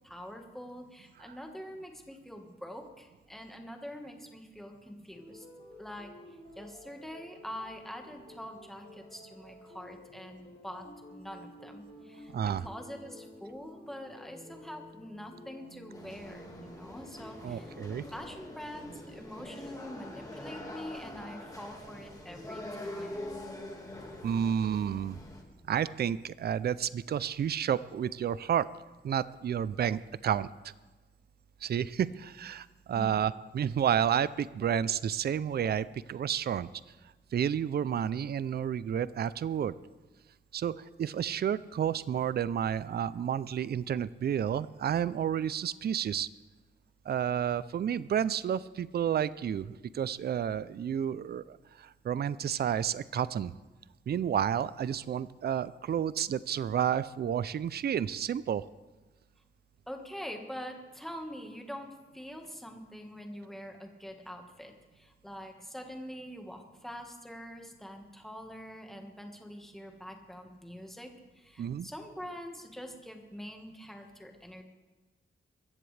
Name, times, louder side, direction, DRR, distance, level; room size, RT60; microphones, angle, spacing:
voice 1, 0.0-5.4 5.8-17.7 18.1-23.3 32.9-33.2 59.9-71.1 71.3-74.6, equal, ahead, 3 dB, 1.4 m, -45 dB
sound 1, 5.1-23.4, equal, 35° left, 6.0 m, -52 dB
voice 2, 12.3-12.7 17.4-18.0 24.2-25.2 25.7-28.7 29.0-30.5 31.6-36.7 37.3-39.7 40.5-46.3 47.1-53.5 54.1-58.6 71.6-71.9, right 9 dB, 55° right, 17 dB, 0.4 m, -31 dB
sound 2, 15.9-25.4, left 1 dB, 15° left, 1.8 m, -44 dB
23.5 x 15.0 x 3.3 m, 1.2 s
wide cardioid pair, 160°, 20 cm